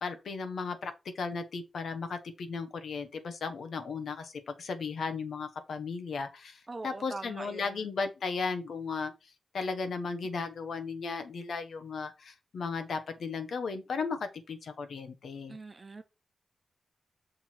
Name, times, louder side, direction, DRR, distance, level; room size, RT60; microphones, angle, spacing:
voice 1, 0.0-15.6, left 4 dB, 75° left, 1.1 m, -36 dB
voice 2, 6.7-7.7 15.5-16.0, right 3 dB, 25° right, 1.0 m, -42 dB
6.5 x 4.4 x 4.5 m
wide cardioid pair, 170°, 0 cm